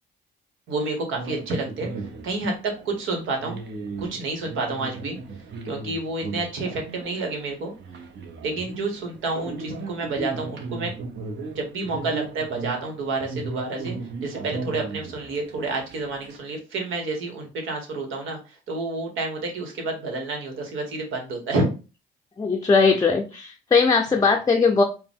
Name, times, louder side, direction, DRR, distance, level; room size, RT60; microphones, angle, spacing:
voice 1, 0.7-1.9 2.2-2.5 2.8-3.6 4.0-5.2 5.6-7.7 8.4-10.9 11.5-14.0 14.2-21.7, right 3 dB, 85° right, 1.3 m, -29 dB
sound 1, 1.1-16.4, right 3 dB, 60° right, 0.8 m, -36 dB
voice 2, 22.4-24.8, left 4 dB, 20° left, 0.5 m, -19 dB
4.7 x 2.2 x 3.6 m
cardioid pair, 90°, 20 cm